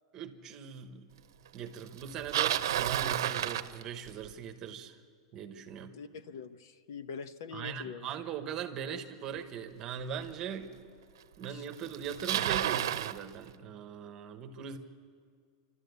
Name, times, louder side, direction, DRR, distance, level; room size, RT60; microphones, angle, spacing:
voice 1, 0.1-1.1 1.5-5.0 5.3-6.0 7.5-10.7 11.4-14.8, right 7 dB, 20° right, 7 dB, 1.1 m, -40 dB
Bicycle, 2.0-4.3 9.4-9.5 10.3-10.4 11.4-11.5 11.7-13.2, right 11 dB, 80° right, 0.8 m, -31 dB
voice 2, 5.9-8.1 11.5-11.7, left 5 dB, 65° left, 13 dB, 0.8 m, -44 dB
29.5 x 12.5 x 8.1 m, 2.2 s
supercardioid pair, 175°, 2 cm